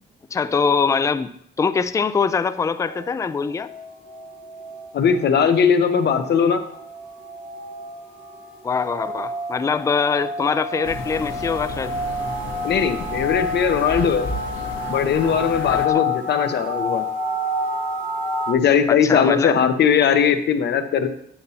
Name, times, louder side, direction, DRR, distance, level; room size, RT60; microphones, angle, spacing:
voice 1, 0.3-1.3 1.6-3.7 8.6-11.9 15.9-16.0 18.9-19.6, left 5 dB, 15° left, 12 dB, 0.3 m, -23 dB
sound 1, 2.3-18.5, left 2 dB, 75° right, 2.3 m, -30 dB
voice 2, 4.9-6.6 12.6-14.3 14.9-17.0 18.5-21.1, left 7 dB, 60° left, 8 dB, 0.8 m, -19 dB
sound 2, 10.8-15.9, left 3 dB, 80° left, 1.2 m, -33 dB
8.7 x 6.7 x 2.8 m, 0.69 s
cardioid pair, 90°, 20 cm